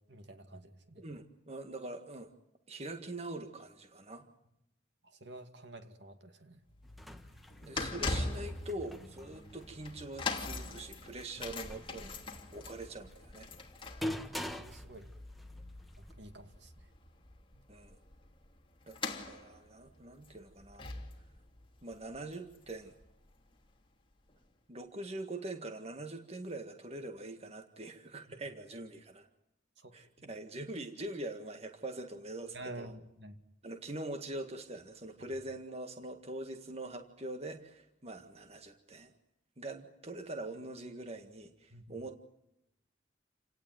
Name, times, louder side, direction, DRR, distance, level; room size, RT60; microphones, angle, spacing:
voice 1, 0.1-1.0 5.2-6.6 14.3-15.1 16.0-16.7 17.5-17.6 29.8-30.3 32.5-33.4 41.7-42.0, right 1 dB, 65° right, 8 dB, 2.5 m, -49 dB
voice 2, 1.0-2.3 2.7-4.3 7.6-12.2 12.5-13.5 17.7-18.0 18.9-20.9 21.8-22.9 24.7-29.3 29.9-32.9 33.6-39.1 39.6-42.2, right 2 dB, 35° right, 6 dB, 1.7 m, -43 dB
sound 1, 6.7-23.0 23.3-23.5 24.3-24.4, left 3 dB, 30° left, 3.0 m, -42 dB
sound 2, 6.8-16.1, left 1 dB, ahead, 1.5 m, -46 dB
29.0 x 18.0 x 9.4 m, 0.86 s
head